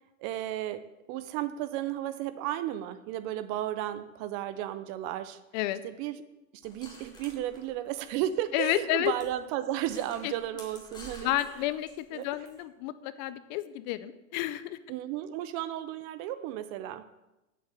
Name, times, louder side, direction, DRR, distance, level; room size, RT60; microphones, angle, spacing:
voice 1, 0.2-5.4 5.8-6.2 6.5-11.3 12.1-12.3 14.9-17.0, right 12 dB, 30° right, 13 dB, 0.5 m, -34 dB
sound 1, 6.6-8.4 8.7-8.8 9.1-9.3 9.8-12.5, left 1 dB, 10° left, 2.7 m, -50 dB
voice 2, 8.5-9.1 10.2-10.3 11.2-14.8, left 15 dB, 35° left, 14 dB, 0.4 m, -31 dB
8.2 x 7.6 x 7.4 m, 0.99 s
hypercardioid pair, 125°, 41 cm